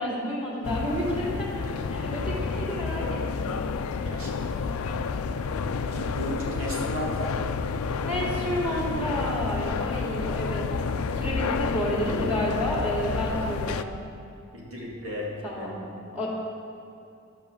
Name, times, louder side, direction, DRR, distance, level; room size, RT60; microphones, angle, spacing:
voice 1, 0.0-1.6 1.9-3.5 8.0-10.7 11.1-13.9 15.4-15.8 16.1-16.3, equal, 5° right, -6 dB, 2.5 m, -30 dB
sound 1, 0.6-13.8, left 5 dB, 80° left, 0.4 m, -30 dB
voice 2, 5.8-7.4 14.5-15.8, equal, 80° right, -4 dB, 2.2 m, -35 dB
12.5 x 5.3 x 6.9 m, 2.7 s
head